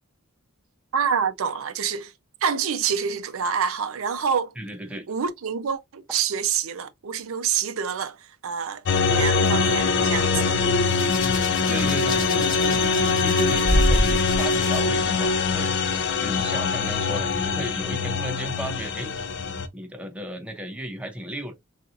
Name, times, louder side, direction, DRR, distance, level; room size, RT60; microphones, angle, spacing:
voice 1, 0.9-2.1 2.4-4.5 5.1-11.0, right 7 dB, 65° right, 0.5 m, -27 dB
voice 2, 4.6-5.1 11.7-15.9 16.2-19.1 19.7-21.5, equal, 5° right, 0.5 m, -34 dB
sound 1, 8.9-19.7, left 4 dB, 55° left, 0.5 m, -23 dB
Hands, 10.9-14.8 15.8-16.1, equal, 40° left, 0.9 m, -27 dB
3.9 x 2.5 x 2.4 m
head